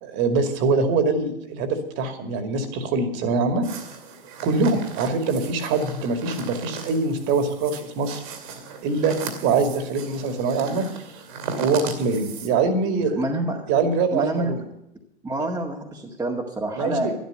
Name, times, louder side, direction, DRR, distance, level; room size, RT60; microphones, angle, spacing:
voice 1, 0.0-3.7 4.4-8.2 8.8-9.2 9.4-11.2 11.5-13.2 13.7-14.6 16.8-17.2, right 4 dB, 40° right, 7 dB, 2.4 m, -23 dB
sound 1, 3.6-12.5, right 5 dB, 55° right, 2.7 m, -37 dB
voice 2, 13.1-13.6 14.1-14.5 15.2-17.2, right 2 dB, 10° right, -3 dB, 1.9 m, -27 dB
12.0 x 12.0 x 6.6 m, 0.79 s
figure-of-eight pair, 90°, 29 cm